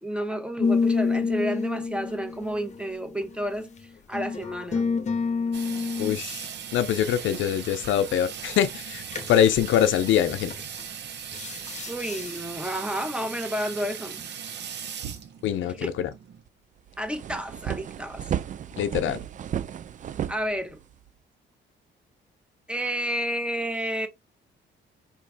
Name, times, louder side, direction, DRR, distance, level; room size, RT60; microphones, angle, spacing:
voice 1, 0.0-3.7 4.1-4.9 11.9-14.2 15.8-15.9 17.0-18.3 20.3-20.8 22.7-24.1, equal, 5° right, 0.9 m, -31 dB
sound 1, 0.6-3.4 4.1-6.2 9.1-9.4 10.5-10.8 11.3-12.4, left 4 dB, 35° left, 0.8 m, -28 dB
Water tap faucet / Sink (filling or washing), 5.5-16.4, right 8 dB, 60° right, 0.8 m, -38 dB
voice 2, 6.0-10.5 15.4-16.1 18.8-19.2, left 10 dB, 75° left, 0.5 m, -24 dB
sound 2, 16.5-16.6 16.9-21.1, right 10 dB, 40° right, 0.4 m, -33 dB
4.5 x 3.0 x 2.7 m
cardioid pair, 90°, 20 cm